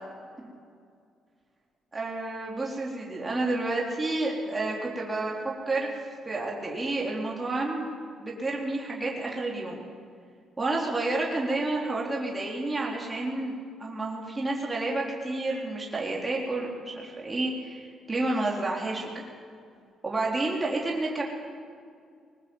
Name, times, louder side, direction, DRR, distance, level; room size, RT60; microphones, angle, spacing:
voice 1, 1.9-5.4 5.7-5.9 6.3-7.9 8.2-9.8 10.6-19.2 20.0-21.2, right 2 dB, 20° right, -3 dB, 3.9 m, -30 dB
21.0 x 19.5 x 8.0 m, 2.2 s
cardioid pair, 90°, 0 cm